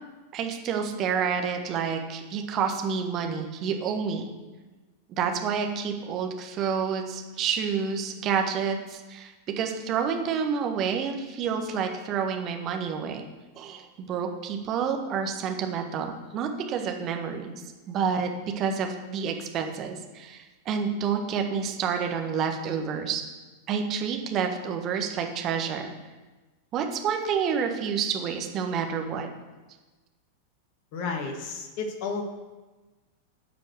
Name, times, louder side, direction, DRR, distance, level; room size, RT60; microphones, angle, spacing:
voice 1, 0.3-4.3 5.1-13.2 13.5-23.2 23.7-25.9 26.7-29.3, right 6 dB, 35° right, 4 dB, 1.4 m, -29 dB
voice 2, 30.9-32.2, left 4 dB, 45° left, 4 dB, 1.6 m, -32 dB
10.5 x 5.1 x 7.9 m, 1.2 s
figure-of-eight pair, 90°, 0 cm